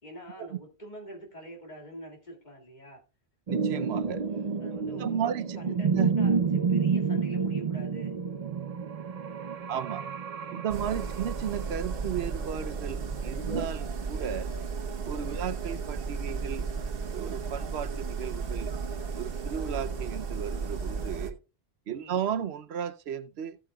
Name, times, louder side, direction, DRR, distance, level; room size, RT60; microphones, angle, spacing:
voice 1, 0.0-3.0 4.6-8.1 9.4-9.7 21.9-22.1, equal, 45° left, 2.3 m, -45 dB
sound 1, 3.5-13.7, right 5 dB, 45° right, 0.6 m, -30 dB
voice 2, 3.5-4.2 5.0-6.1 9.7-10.1 10.5-14.5 15.0-16.7 17.1-18.7 19.1-21.4 21.9-23.6, right 8 dB, 80° right, 0.9 m, -34 dB
sound 2, 10.7-21.3, right 5 dB, 65° right, 1.2 m, -34 dB
15.0 x 8.6 x 2.3 m
omnidirectional pair, 1.1 m